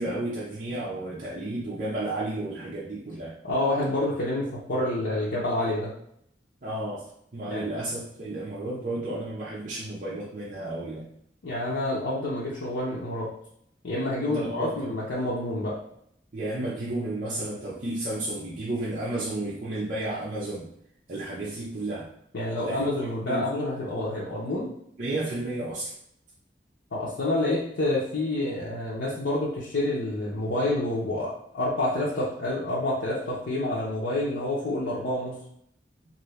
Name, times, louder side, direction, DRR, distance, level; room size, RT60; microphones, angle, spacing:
voice 1, 0.0-3.3 6.6-7.1 7.3-11.1 14.3-14.9 16.3-20.7 21.1-22.1 22.6-22.8 23.2-23.5 25.0-25.9, right 2 dB, 45° right, -7 dB, 0.6 m, -32 dB
voice 2, 3.4-5.9 7.5-7.7 11.4-13.3 13.8-15.7 22.3-24.7 26.9-35.4, left 1 dB, 85° left, -7 dB, 0.7 m, -28 dB
2.7 x 2.6 x 3.2 m, 0.70 s
head